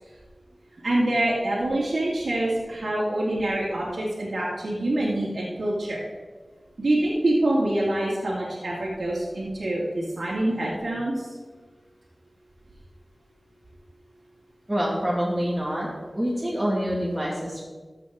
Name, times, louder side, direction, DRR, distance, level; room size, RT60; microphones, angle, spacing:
voice 1, 0.8-6.0 6.8-11.3, right 1 dB, 80° right, -6 dB, 2.3 m, -25 dB
voice 2, 14.7-15.9 16.1-17.6, equal, 15° right, -5 dB, 2.2 m, -26 dB
14.0 x 7.4 x 3.7 m, 1.4 s
wide cardioid pair, 50°, 0 cm